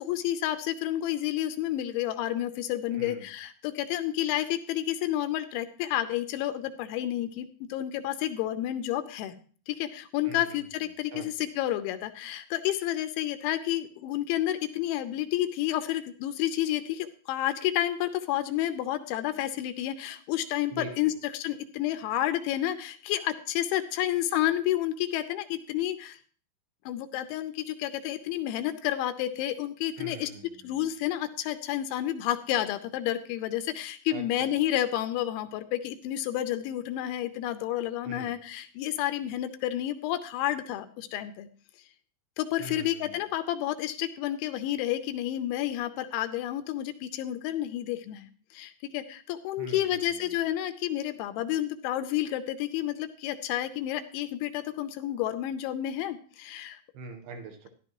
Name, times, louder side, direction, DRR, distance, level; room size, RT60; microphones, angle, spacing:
voice 1, 0.0-9.3 9.7-26.2 26.9-30.3 30.6-41.5 42.4-56.8, left 13 dB, 80° left, 10 dB, 3.0 m, -30 dB
voice 2, 2.9-3.3 10.2-10.7 11.1-11.5 20.7-21.1 30.0-30.9 34.1-34.8 38.0-38.3 42.6-43.2 49.6-50.4 56.9-57.7, right 3 dB, 70° right, 4 dB, 2.7 m, -43 dB
13.5 x 11.5 x 3.0 m, 0.42 s
omnidirectional pair, 5.5 m